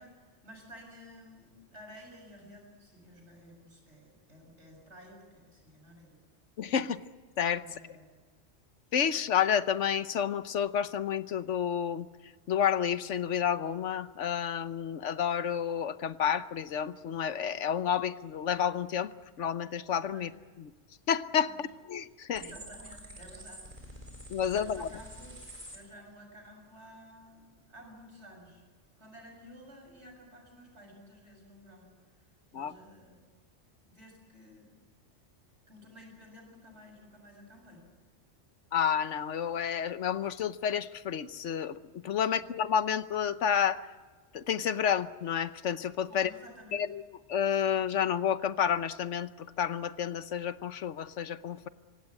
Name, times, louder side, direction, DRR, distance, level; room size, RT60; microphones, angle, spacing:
voice 1, 0.0-6.2 7.6-8.1 20.1-20.3 21.4-21.6 22.3-24.0 24.4-25.4 25.7-28.6 29.0-31.9 32.5-33.2 33.8-34.8 35.7-37.8 42.2-42.5 46.1-46.9, equal, 70° right, 1 dB, 7.5 m, -53 dB
voice 2, 6.6-7.0 7.4-7.6 8.9-12.1 12.5-19.1 19.4-20.3 20.6-20.7 21.1-22.5 24.3-24.9 32.5-32.7 38.7-43.8 44.3-46.3 46.7-47.0 47.3-51.7, left 8 dB, 85° left, 13 dB, 1.2 m, -30 dB
sound 1, 22.3-25.8, equal, 30° right, 4.2 m, -47 dB
25.0 x 17.0 x 9.8 m, 1.4 s
omnidirectional pair, 1.2 m